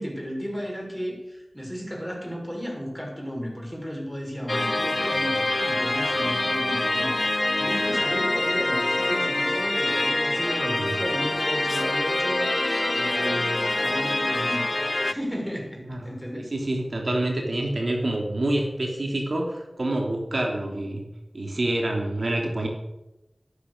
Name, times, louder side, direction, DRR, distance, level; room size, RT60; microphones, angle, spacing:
voice 1, 0.0-14.7 15.0-16.5, equal, ahead, 0 dB, 6.0 m, -34 dB
sound 1, 4.5-15.1, left 2 dB, 45° left, 0.6 m, -25 dB
voice 2, 10.4-11.0 15.9-16.1 16.5-21.0 21.3-22.7, right 1 dB, 70° right, 1 dB, 2.9 m, -27 dB
13.5 x 12.0 x 6.6 m, 0.95 s
wide cardioid pair, 45°, 0 cm